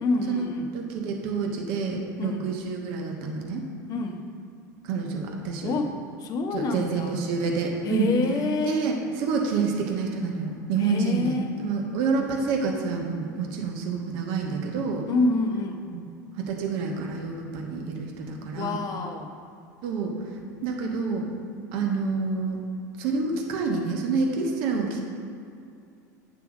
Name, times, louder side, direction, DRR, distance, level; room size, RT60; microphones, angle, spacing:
voice 1, 0.0-0.7 2.2-2.5 3.9-4.2 5.6-7.2 7.8-8.8 10.8-11.6 15.1-15.8 18.5-19.3, left 3 dB, 40° left, 5 dB, 0.9 m, -27 dB
voice 2, 0.7-3.7 4.8-5.7 6.5-8.1 8.6-15.0 15.9-16.0 16.4-18.8 19.8-20.1 20.6-21.2 21.7-22.6 23.0-25.0, right 4 dB, 55° right, 1 dB, 1.1 m, -28 dB
9.1 x 3.5 x 6.1 m, 2.4 s
hypercardioid pair, 85°, 10 cm